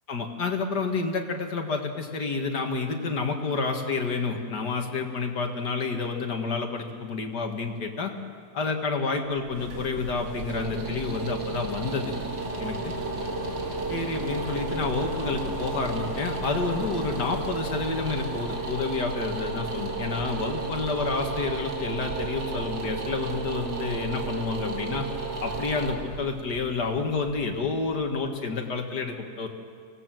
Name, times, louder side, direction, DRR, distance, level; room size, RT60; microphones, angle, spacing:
voice 1, 0.1-8.1 8.5-12.1 12.6-12.9 13.9-25.1 25.4-29.5, left 4 dB, 85° left, 3 dB, 2.4 m, -29 dB
sound 1, 9.3-28.3, right 3 dB, 85° right, 2.5 m, -33 dB
sound 2, 9.5-18.8, left 5 dB, 45° left, 1.4 m, -43 dB
25.0 x 17.5 x 7.7 m, 2.1 s
omnidirectional pair, 1.7 m